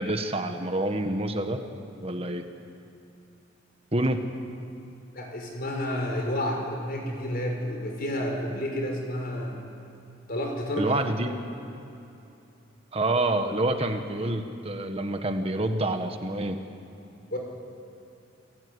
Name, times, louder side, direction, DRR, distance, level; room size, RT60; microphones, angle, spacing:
voice 1, 0.0-1.6 2.0-2.4 3.9-4.2 10.8-11.3 12.9-16.6, right 1 dB, 30° right, 6 dB, 1.4 m, -27 dB
voice 2, 5.1-9.6 10.3-10.9 11.3-11.4 17.3-17.4, left 1 dB, 50° left, 1 dB, 5.6 m, -30 dB
29.0 x 18.5 x 9.7 m, 2.7 s
head